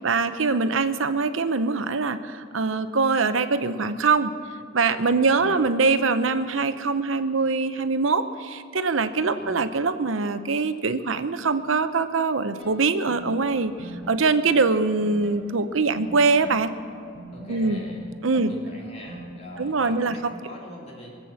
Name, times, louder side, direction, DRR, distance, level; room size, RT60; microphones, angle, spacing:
voice 1, 0.0-4.3 4.7-16.7 17.5-17.8 18.2-18.5 19.6-20.3, right 4 dB, 90° right, 11 dB, 0.8 m, -23 dB
voice 2, 5.1-5.6 9.2-9.6 17.3-18.1 18.3-21.2, equal, 35° left, -3 dB, 3.3 m, -42 dB
sound 1, 12.6-20.2, right 1 dB, ahead, 5.0 m, -43 dB
23.5 x 7.9 x 7.2 m, 2.4 s
head